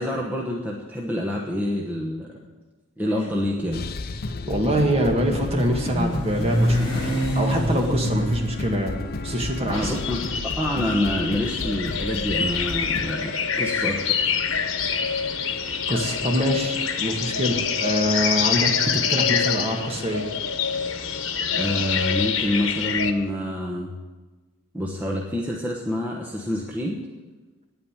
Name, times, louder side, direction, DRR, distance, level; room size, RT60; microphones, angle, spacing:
voice 1, 0.0-2.3 3.0-3.8 9.7-10.2 10.6-14.2 21.5-24.0 24.7-27.0, left 1 dB, 10° right, -2 dB, 1.1 m, -27 dB
Motorcycle, 3.4-11.6, equal, 25° left, 3.5 m, -27 dB
sound 1, 3.7-13.1, left 3 dB, 50° left, 0.5 m, -33 dB
voice 2, 4.5-8.9 9.2-10.0 15.9-20.3, equal, 30° right, 1 dB, 1.9 m, -25 dB
sound 2, 9.7-23.1, left 6 dB, 90° left, 1.1 m, -26 dB
9.7 x 9.0 x 9.7 m, 1.3 s
head